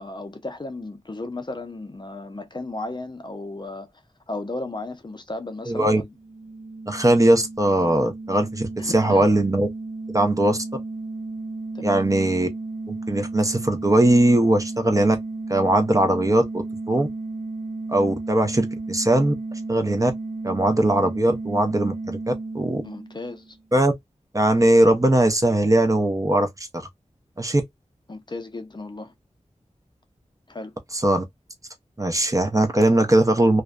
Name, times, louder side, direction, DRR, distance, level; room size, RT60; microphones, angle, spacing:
voice 1, 0.0-3.9 4.3-6.1 8.8-9.3 11.7-12.1 22.8-23.6 28.1-29.1 30.5-30.7, left 2 dB, 35° left, 0.5 m, -34 dB
voice 2, 5.7-6.0 6.9-9.7 10.1-10.6 11.8-12.5 12.9-15.2 15.5-17.1 17.9-19.3 19.7-20.1 20.4-22.8 23.7-23.9 24.3-26.9 27.4-27.6 30.9-31.2 32.0-33.6, right 1 dB, 25° right, 0.6 m, -20 dB
sound 1, 6.1-23.6, right 3 dB, 70° right, 0.4 m, -33 dB
2.5 x 2.1 x 2.3 m
wide cardioid pair, 50°, 13 cm